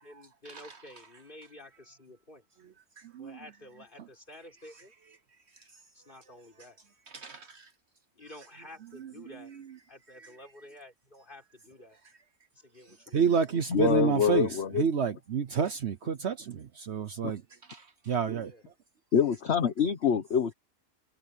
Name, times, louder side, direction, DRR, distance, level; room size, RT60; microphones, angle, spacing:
voice 1, 0.0-2.5 3.1-4.9 5.9-6.8 8.1-9.5 9.9-12.0 12.5-13.2 18.2-18.6, left 1 dB, 35° left, 4.8 m, -51 dB
voice 2, 7.1-7.6 13.1-14.5 14.8-17.4 17.7-18.5, right 6 dB, 55° right, 1.0 m, -29 dB
voice 3, 13.7-14.9 17.2-17.3 19.1-20.5, left 8 dB, 55° left, 1.2 m, -25 dB
omnidirectional pair, 1.5 m